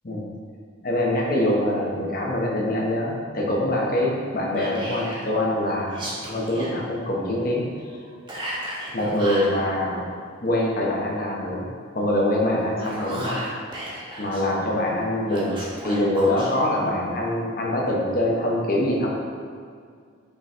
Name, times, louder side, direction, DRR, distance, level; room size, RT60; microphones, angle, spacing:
voice 1, 0.8-7.6 8.9-10.0 10.4-11.6 11.9-13.5 14.2-19.1, left 1 dB, 45° left, -2 dB, 1.0 m, -24 dB
Whispering, 4.5-5.3 5.9-6.7 8.3-9.5 12.6-14.4 15.3-16.5, equal, 25° right, 1.1 m, -34 dB
5.8 x 3.8 x 4.4 m, 2.1 s
head